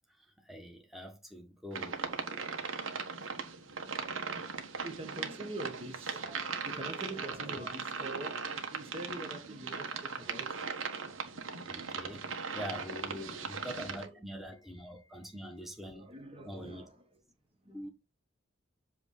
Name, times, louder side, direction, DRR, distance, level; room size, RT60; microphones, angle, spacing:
voice 1, 0.4-2.0 11.7-12.2 12.5-16.1 16.4-16.8 17.6-17.9, equal, ahead, 1.3 m, -44 dB
sound 1, 1.7-14.1, right 5 dB, 85° right, 1.4 m, -39 dB
voice 2, 4.8-11.2 13.0-13.5 14.0-15.3 15.9-17.2 17.6-17.8, right 2 dB, 30° right, 1.3 m, -45 dB
8.0 x 3.2 x 5.5 m
head